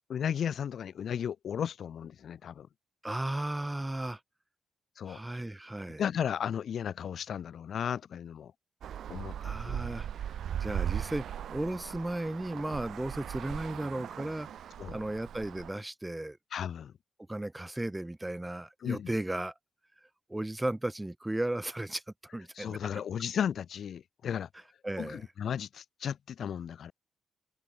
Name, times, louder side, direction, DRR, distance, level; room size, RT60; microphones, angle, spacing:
voice 1, 0.1-2.7 5.0-5.2 6.0-8.5 9.1-9.3 9.6-9.8 14.8-15.0 16.5-16.9 18.8-19.1 22.6-24.5 25.0-26.9, left 8 dB, 70° left, 0.3 m, -34 dB
voice 2, 3.0-4.2 5.1-6.0 9.4-10.1 10.6-14.5 14.9-16.4 17.3-19.5 20.3-22.0 22.3-22.8 24.8-25.2, right 1 dB, 10° right, 1.6 m, -35 dB
Traffic noise roadway noise, 8.8-15.7, right 9 dB, 75° right, 0.6 m, -38 dB
cardioid pair, 75°, 0 cm